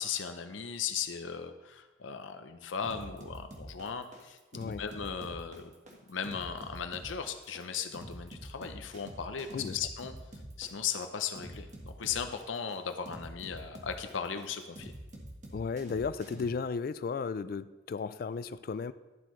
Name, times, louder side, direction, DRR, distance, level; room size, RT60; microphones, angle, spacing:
voice 1, 0.0-5.7 6.1-10.1 10.6-14.9, left 7 dB, 90° left, 8 dB, 0.6 m, -37 dB
sound 1, 2.8-16.5, right 1 dB, 40° right, 1.3 m, -46 dB
voice 2, 4.5-4.8 9.5-9.8 15.5-18.9, left 5 dB, 50° left, 14 dB, 0.3 m, -34 dB
11.5 x 7.7 x 3.1 m, 1.1 s
head